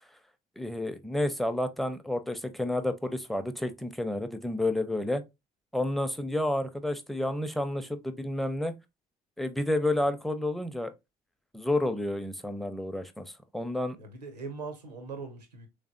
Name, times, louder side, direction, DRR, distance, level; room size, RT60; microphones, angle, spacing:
voice 1, 0.6-5.2 5.7-8.7 9.4-10.9 11.5-13.2 13.5-14.0, left 1 dB, ahead, 0.5 m, -30 dB
voice 2, 14.0-15.7, right 4 dB, 85° right, 0.6 m, -41 dB
3.5 x 3.3 x 2.5 m
figure-of-eight pair, 50°, 20 cm